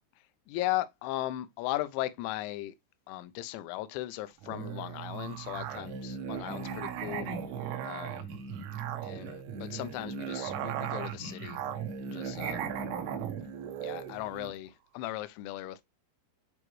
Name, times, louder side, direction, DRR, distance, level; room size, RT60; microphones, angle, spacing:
voice 1, 0.5-2.8 3.1-7.3 7.8-8.3 9.0-11.6 12.1-12.6 13.8-15.8, left 16 dB, 80° left, 2.9 m, -37 dB
Musical instrument, 4.4-14.6, right 7 dB, 90° right, 3.8 m, -37 dB
9.7 x 4.5 x 3.1 m
omnidirectional pair, 5.7 m